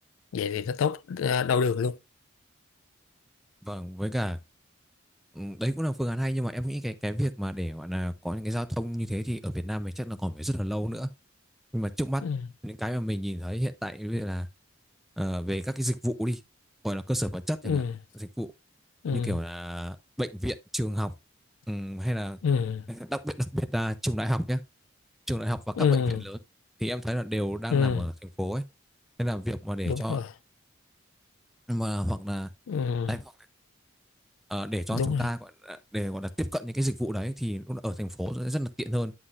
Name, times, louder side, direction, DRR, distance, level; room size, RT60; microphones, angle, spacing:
voice 1, 0.3-2.0 12.2-12.4 17.6-17.9 19.0-19.4 22.4-22.8 25.8-26.2 27.7-28.1 29.9-30.3 32.7-33.1 34.9-35.3, left 6 dB, 85° left, 0.4 m, -26 dB
voice 2, 3.6-4.4 5.3-11.1 11.7-12.2 12.6-14.5 15.2-16.4 16.8-17.8 18.2-18.5 19.1-21.1 21.7-22.4 22.9-24.6 25.3-25.9 26.2-26.4 26.8-28.1 28.4-28.6 29.2-30.2 31.7-32.5 33.1-33.2 34.5-39.1, equal, ahead, 0.4 m, -31 dB
9.7 x 5.8 x 2.4 m
head